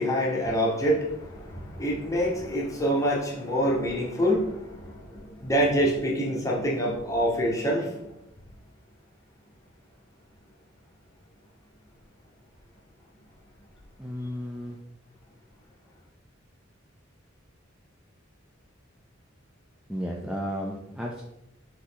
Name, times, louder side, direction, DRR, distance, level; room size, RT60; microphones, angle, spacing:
voice 1, 0.0-8.1, equal, 15° left, -3 dB, 0.9 m, -26 dB
voice 2, 14.0-14.8 19.9-21.2, equal, 5° right, -2 dB, 0.4 m, -33 dB
4.0 x 3.2 x 3.9 m, 0.86 s
head